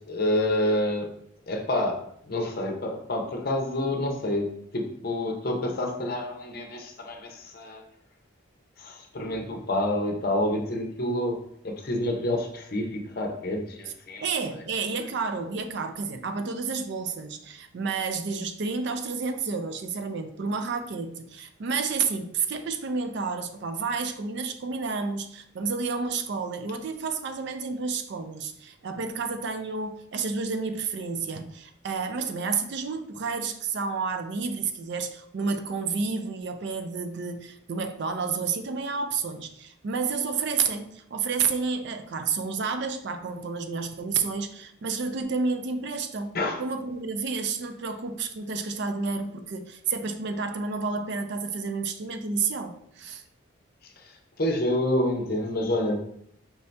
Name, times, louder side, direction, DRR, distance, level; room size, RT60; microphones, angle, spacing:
voice 1, 0.1-1.1 1.5-7.8 8.8-11.4 11.6-14.3 46.3-46.6 54.0-54.1 54.4-56.0, left 1 dB, 45° left, 3 dB, 0.7 m, -28 dB
voice 2, 14.2-53.2, right 5 dB, 55° right, 8 dB, 0.4 m, -30 dB
4.6 x 2.7 x 3.2 m, 0.68 s
head